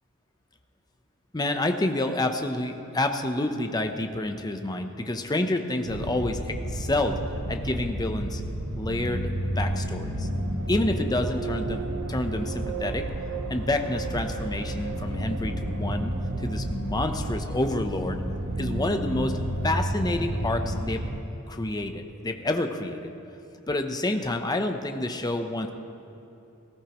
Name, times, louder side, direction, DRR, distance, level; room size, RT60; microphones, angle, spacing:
voice 1, 1.3-7.2 7.5-8.4 8.7-10.3 10.7-13.0 13.5-18.2 18.6-21.0 21.5-23.0 23.7-25.7, left 2 dB, 20° left, 6 dB, 0.7 m, -28 dB
sound 1, 5.8-21.2, right 1 dB, 65° right, 1.0 m, -31 dB
19.0 x 16.0 x 3.0 m, 2.9 s
head